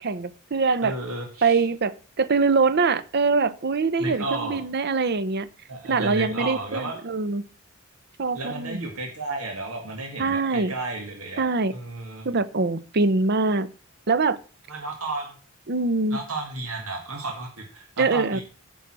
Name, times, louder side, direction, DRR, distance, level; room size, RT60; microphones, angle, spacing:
voice 1, 0.0-0.9 1.4-1.9 2.2-5.5 5.9-7.4 8.2-8.8 10.2-10.7 11.4-11.7 12.2-13.7 14.1-14.4 15.7-16.2 18.0-18.4, right 4 dB, 50° right, 15 dB, 0.7 m, -23 dB
voice 2, 0.8-1.6 4.0-4.6 5.7-7.0 8.3-12.3 14.7-15.4 16.1-18.4, right 2 dB, 90° right, 2 dB, 2.0 m, -33 dB
9.2 x 5.5 x 6.0 m, 0.39 s
head